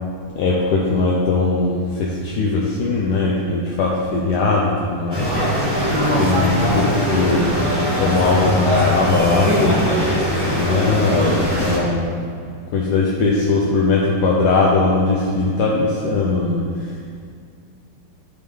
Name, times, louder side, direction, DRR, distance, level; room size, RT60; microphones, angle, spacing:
voice 1, 0.4-5.3 6.2-7.5 8.0-10.1 10.4-12.0 12.7-16.6, left 3 dB, 70° left, -4 dB, 1.2 m, -19 dB
sound 1, 5.1-11.8, equal, 15° right, 1.6 m, -20 dB
10.0 x 3.6 x 3.3 m, 2.2 s
omnidirectional pair, 2.0 m